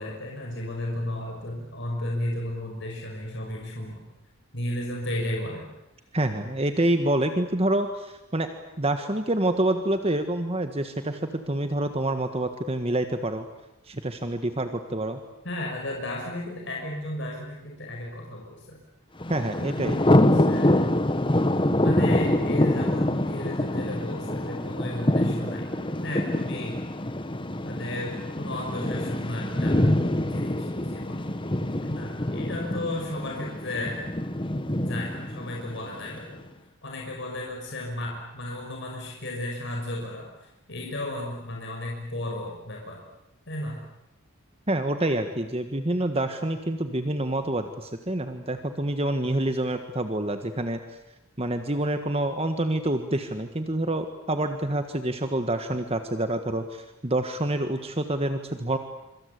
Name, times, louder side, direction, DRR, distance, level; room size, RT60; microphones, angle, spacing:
voice 1, 0.0-4.0 4.5-5.6 15.4-18.8 19.6-20.8 21.8-25.7 26.0-26.8 27.6-29.8 30.2-31.2 31.8-34.0 34.8-36.4 36.8-40.3 40.7-43.0 43.5-43.8, left 1 dB, 55° left, -1 dB, 5.9 m, -34 dB
voice 2, 6.1-8.5 8.8-13.4 13.9-15.2 19.3-20.0 44.7-50.8 51.4-58.8, right 1 dB, 30° right, 7 dB, 1.6 m, -27 dB
Thunder, 19.2-36.2, left 1 dB, 25° left, 1.3 m, -25 dB
26.5 x 26.0 x 8.4 m, 0.92 s
head